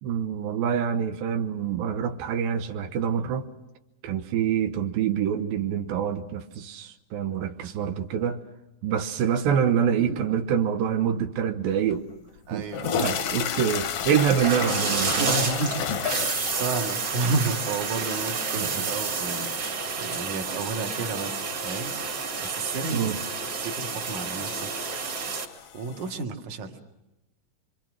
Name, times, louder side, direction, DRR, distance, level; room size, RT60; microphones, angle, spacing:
voice 1, 0.0-3.5 4.0-8.4 8.8-12.1 12.5-12.7 12.9-15.4 22.9-23.2, right 8 dB, 90° right, 2.8 m, -26 dB
sound 1, 11.9-12.0 12.6-26.2, left 9 dB, 65° left, 1.6 m, -35 dB
voice 2, 12.5-13.3 15.2-15.9 16.2-19.5 20.0-21.9 22.4-23.1 23.6-24.7 25.7-26.8, right 3 dB, 60° right, 3.2 m, -31 dB
sound 2, 14.4-25.5, right 4 dB, 45° right, 3.5 m, -30 dB
25.5 x 25.5 x 6.2 m
omnidirectional pair, 4.1 m